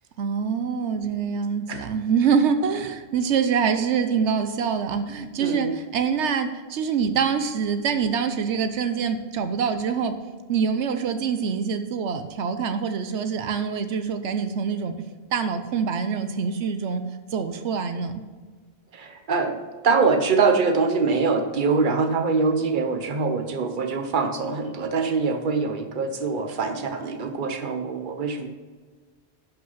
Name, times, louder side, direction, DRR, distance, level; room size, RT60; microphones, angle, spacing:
voice 1, 0.2-10.1 10.5-14.9 15.3-17.0 17.3-18.2, right 6 dB, 85° right, 9 dB, 1.0 m, -25 dB
voice 2, 5.4-5.7 18.9-19.6 19.8-28.5, right 4 dB, 50° right, 6 dB, 1.1 m, -24 dB
11.5 x 5.8 x 5.7 m, 1.4 s
omnidirectional pair, 1.1 m